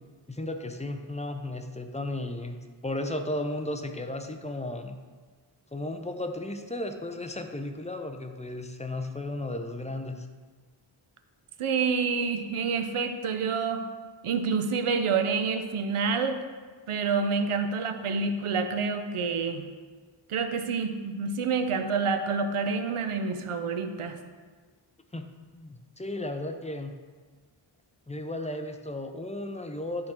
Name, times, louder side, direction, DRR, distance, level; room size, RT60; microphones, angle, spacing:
voice 1, 0.3-5.0 5.7-10.3 25.1-26.9 28.1-30.1, left 1 dB, 15° left, 6 dB, 0.6 m, -34 dB
voice 2, 11.6-13.8 14.2-16.4 16.9-19.6 20.3-24.2, right 5 dB, 85° right, 7 dB, 0.7 m, -28 dB
10.5 x 3.7 x 4.4 m, 1.4 s
wide cardioid pair, 60°, 49 cm